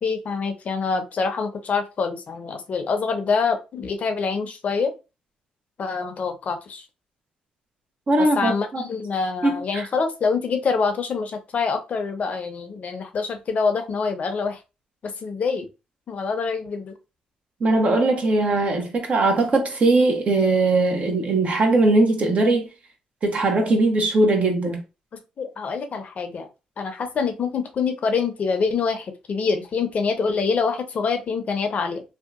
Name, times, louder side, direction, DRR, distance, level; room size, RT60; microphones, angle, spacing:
voice 1, 0.0-4.9 5.8-6.8 8.4-14.6 15.0-15.7 16.1-16.9 25.4-26.5 26.8-32.0, left 5 dB, 55° left, 0.6 m, -25 dB
voice 2, 8.1-8.8 9.4-9.9 17.6-22.7 23.2-24.8, right 2 dB, 50° right, 0.9 m, -20 dB
2.7 x 2.2 x 2.4 m
supercardioid pair, 50°, 3 cm